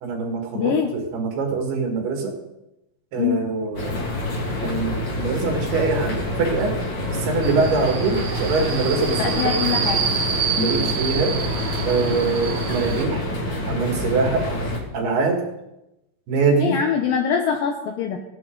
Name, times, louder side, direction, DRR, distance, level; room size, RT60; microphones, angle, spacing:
voice 1, 0.0-2.3 3.1-4.0 4.6-6.7 7.1-9.5 10.6-11.3 11.8-13.3 13.7-14.5 14.9-15.4 16.3-16.8, right 4 dB, 80° right, 2 dB, 4.1 m, -23 dB
voice 2, 0.6-0.9 3.2-3.4 9.2-10.0 10.6-10.9 16.6-18.2, left 7 dB, 70° left, 3 dB, 2.4 m, -23 dB
sound 1, 3.7-14.8, left 1 dB, 35° left, 2.3 m, -27 dB
Subway metro underground, 7.4-13.1, right 6 dB, 65° right, 2.7 m, -27 dB
16.5 x 11.0 x 3.9 m, 0.89 s
omnidirectional pair, 4.5 m